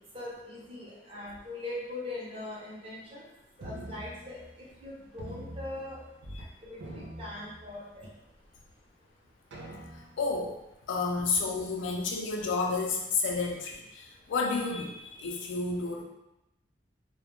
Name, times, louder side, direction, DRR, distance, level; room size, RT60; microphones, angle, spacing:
voice 1, 0.1-3.2 3.6-4.4 4.8-6.0 6.7-8.1, left 2 dB, 30° right, -6 dB, 0.7 m, -41 dB
sound 1, 3.6-4.8 5.2-6.5 6.7-8.1 8.6-8.7 9.5-10.3, right 1 dB, 70° right, 0.4 m, -44 dB
voice 2, 10.2-10.5 10.9-16.0, left 4 dB, 85° left, 1 dB, 0.4 m, -31 dB
2.3 x 2.1 x 2.9 m, 0.92 s
head